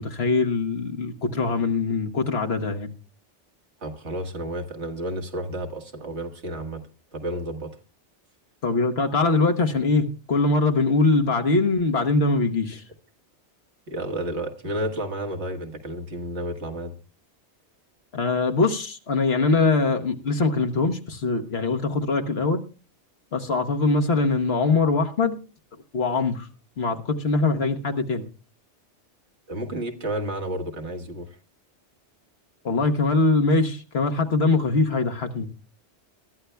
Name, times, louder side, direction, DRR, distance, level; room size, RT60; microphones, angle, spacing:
voice 1, 0.0-2.9 8.6-12.8 18.1-22.6 23.3-25.4 25.9-26.5 26.8-28.2 32.6-35.5, left 3 dB, 65° left, 5 dB, 1.4 m, -22 dB
voice 2, 3.8-6.8 7.1-7.7 13.9-16.9 29.5-31.4, right 1 dB, 70° right, 4 dB, 2.0 m, -31 dB
22.0 x 13.0 x 2.2 m, 0.34 s
omnidirectional pair, 1.2 m